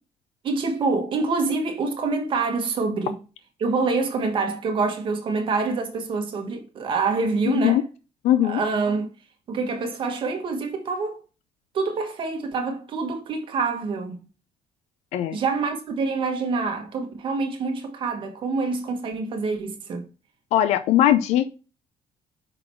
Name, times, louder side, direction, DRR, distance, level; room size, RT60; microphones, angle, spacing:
voice 1, 0.4-3.2 3.6-7.8 8.4-9.1 9.5-11.2 11.7-14.2 15.3-20.0, right 4 dB, 50° right, 1.4 m, -26 dB
voice 2, 7.5-7.8 8.2-8.6 15.1-15.4 20.5-21.5, left 12 dB, 75° left, 0.5 m, -20 dB
5.8 x 3.9 x 4.5 m
cardioid pair, 130°, 11 cm